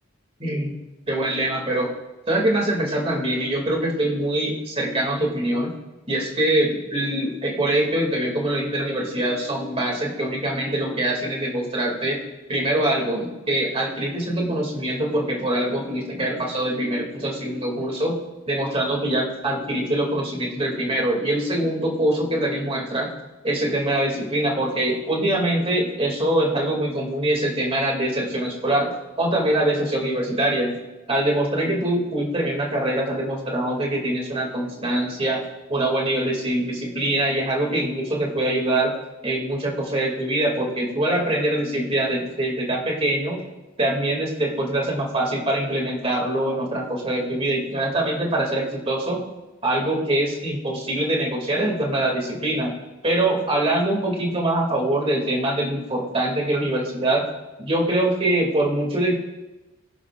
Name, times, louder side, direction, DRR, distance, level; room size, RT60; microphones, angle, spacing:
voice 1, 0.4-0.8 1.1-1.9 2.3-5.7 6.1-12.2 12.5-18.1 18.5-23.1 23.4-28.9 29.2-30.7 31.1-35.4 35.7-38.9 39.2-43.4 43.8-49.2 49.6-52.7 53.0-57.2 57.6-59.1, right 1 dB, 30° right, -1 dB, 2.5 m, -23 dB
21.0 x 11.0 x 2.5 m, 1.1 s
head